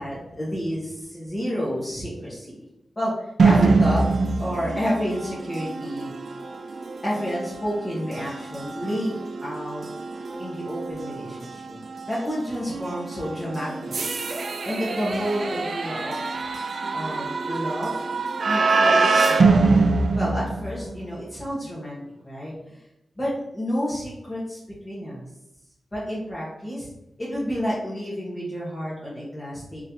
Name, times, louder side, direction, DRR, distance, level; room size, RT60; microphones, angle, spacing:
voice 1, 0.0-2.7 2.9-4.0 4.4-6.1 7.0-9.9 10.4-11.8 12.1-14.2 14.6-16.2 16.9-18.0 18.4-19.5 20.1-22.8 23.2-24.6 24.8-25.2 25.9-26.9 27.2-29.8, equal, 25° left, -8 dB, 1.3 m, -30 dB
sound 1, 3.4-21.1, right 3 dB, 65° right, 0.4 m, -24 dB
3.9 x 3.1 x 2.9 m, 0.86 s
wide cardioid pair, 90°, 0 cm